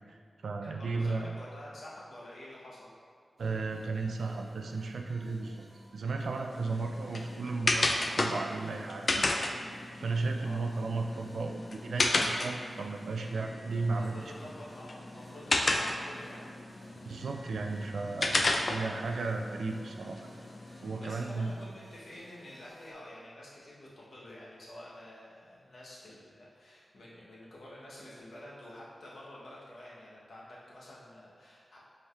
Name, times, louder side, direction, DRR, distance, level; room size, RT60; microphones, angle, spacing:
voice 1, 0.1-1.3 3.4-5.6 5.9-7.9 8.1-9.4 9.9-14.3 17.1-18.4 18.7-20.3 20.8-21.6, right 3 dB, 90° right, 3 dB, 0.3 m, -34 dB
voice 2, 0.6-2.9 10.4-10.7 13.5-16.5 21.0-31.8, left 1 dB, 75° left, -6 dB, 1.0 m, -49 dB
sound 1, 3.4-22.9, right 1 dB, 70° right, 0.9 m, -56 dB
sound 2, 6.5-21.1, left 2 dB, 55° left, 0.4 m, -34 dB
5.2 x 3.4 x 2.4 m, 2.2 s
cardioid pair, 55°, 0 cm